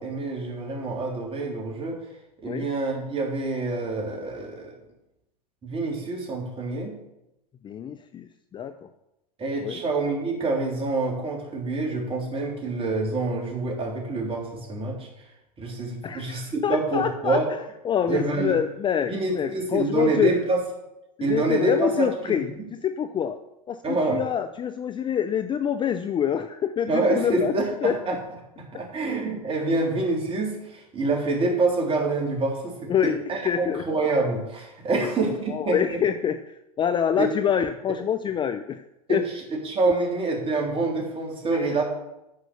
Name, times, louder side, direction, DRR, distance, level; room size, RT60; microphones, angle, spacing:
voice 1, 0.0-2.0 2.4-4.7 5.6-6.9 9.4-15.1 15.6-17.5 18.1-18.6 19.1-20.6 21.2-22.6 23.8-24.2 26.9-28.2 28.6-35.8 37.2-37.3 39.1-39.2 39.6-41.8, right 3 dB, 25° right, 0 dB, 3.4 m, -26 dB
voice 2, 7.6-8.9 9.6-9.8 16.0-17.4 17.8-20.4 21.2-23.4 23.7-28.0 32.9-33.2 33.4-33.8 34.9-35.1 35.5-38.8 39.1-39.2 39.8-39.9 41.5-41.8, left 8 dB, 25° left, 10 dB, 0.5 m, -26 dB
9.5 x 6.0 x 6.9 m, 0.89 s
hypercardioid pair, 95°, 21 cm